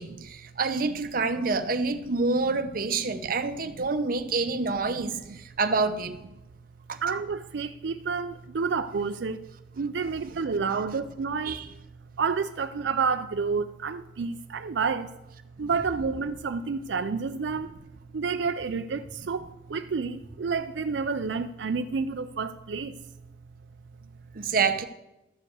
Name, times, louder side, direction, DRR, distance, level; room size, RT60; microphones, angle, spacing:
voice 1, 0.0-6.2 6.9-7.0 11.4-11.6 24.3-24.9, right 4 dB, 55° right, 0.9 m, -27 dB
voice 2, 4.6-5.4 7.0-9.5 9.7-11.6 12.2-15.1 15.6-17.8 18.1-23.0, right 5 dB, 90° right, 0.5 m, -30 dB
12.5 x 5.3 x 8.1 m
head